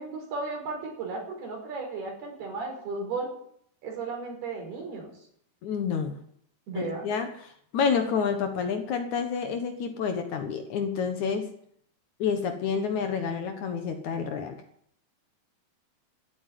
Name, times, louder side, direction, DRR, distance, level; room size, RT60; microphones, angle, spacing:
voice 1, 0.0-3.3 3.8-5.1 6.7-7.1, right 3 dB, 75° right, -1 dB, 7.2 m, -34 dB
voice 2, 5.6-6.2 6.8-11.5 12.2-14.6, left 6 dB, 60° left, 7 dB, 2.2 m, -29 dB
14.5 x 8.8 x 9.7 m, 0.68 s
omnidirectional pair, 4.6 m